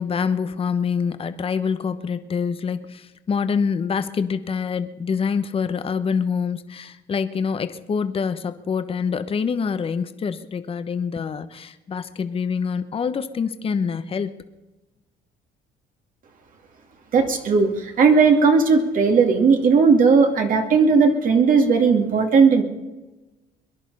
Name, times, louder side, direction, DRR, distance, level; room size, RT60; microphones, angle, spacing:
voice 1, 0.0-14.4, left 6 dB, 35° left, 10 dB, 1.0 m, -26 dB
voice 2, 17.1-22.6, right 5 dB, 55° right, 4 dB, 2.3 m, -17 dB
22.5 x 11.0 x 5.4 m, 1.1 s
cardioid pair, 110°, 17 cm